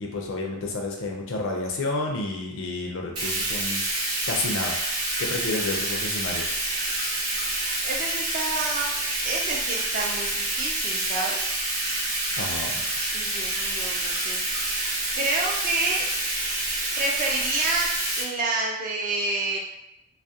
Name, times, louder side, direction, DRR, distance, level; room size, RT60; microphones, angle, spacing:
voice 1, 0.0-3.8 4.3-4.7 5.2-6.5 12.4-12.8, left 2 dB, 60° left, 0 dB, 0.4 m, -30 dB
Bathtub (filling or washing), 3.2-18.2, right 1 dB, 90° right, 0.9 m, -28 dB
voice 2, 7.8-8.9 9.3-11.6 13.1-14.8 15.1-16.1 17.0-17.9 18.2-19.6, right 2 dB, 35° right, -1 dB, 0.4 m, -29 dB
2.3 x 2.0 x 2.7 m, 0.82 s
head